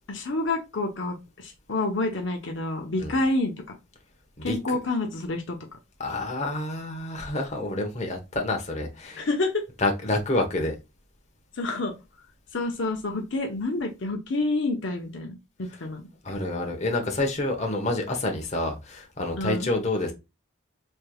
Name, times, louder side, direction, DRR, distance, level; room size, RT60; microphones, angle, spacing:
voice 1, 0.1-3.5 4.4-5.6 9.2-9.6 11.6-11.9 12.5-15.4 15.8-16.0 19.4-19.7, left 2 dB, 65° left, 0.8 m, -28 dB
voice 2, 6.0-9.3 9.8-10.7 16.2-20.1, left 2 dB, 35° left, 1.0 m, -28 dB
4.4 x 3.3 x 2.2 m
head